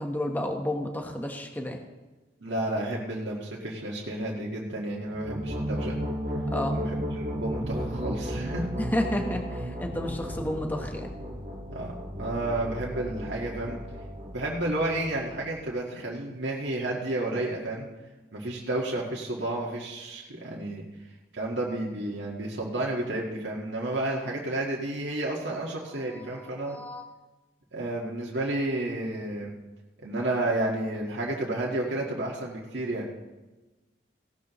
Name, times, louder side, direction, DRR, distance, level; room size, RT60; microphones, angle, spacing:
voice 1, 0.0-1.8 6.5-6.8 8.8-11.1 26.6-27.0, left 1 dB, 10° left, 3 dB, 1.1 m, -31 dB
voice 2, 2.4-6.0 6.7-8.7 11.7-11.9 12.2-13.8 14.3-17.9 18.3-20.8 21.3-26.8 27.7-29.5 30.0-33.1, right 1 dB, 85° right, -3 dB, 1.7 m, -31 dB
sound 1, 5.0-15.7, equal, 45° right, 1.9 m, -34 dB
16.5 x 12.5 x 3.1 m, 1.1 s
head